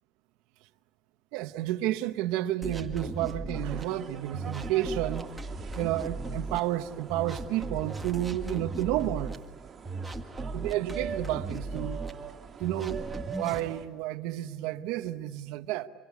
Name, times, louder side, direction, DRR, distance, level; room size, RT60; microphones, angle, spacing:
voice 1, 1.3-5.2 5.7-9.4 10.5-12.0 12.6-15.9, right 14 dB, 85° right, 1.0 m, -31 dB
sound 1, 2.6-3.8 4.3-6.6 7.1-9.4 9.8-12.1 12.6-13.6, right 2 dB, 15° right, 1.7 m, -37 dB
sound 2, 3.5-13.9, right 7 dB, 35° right, 2.4 m, -44 dB
25.5 x 23.5 x 8.3 m
cardioid pair, 120°, 0 cm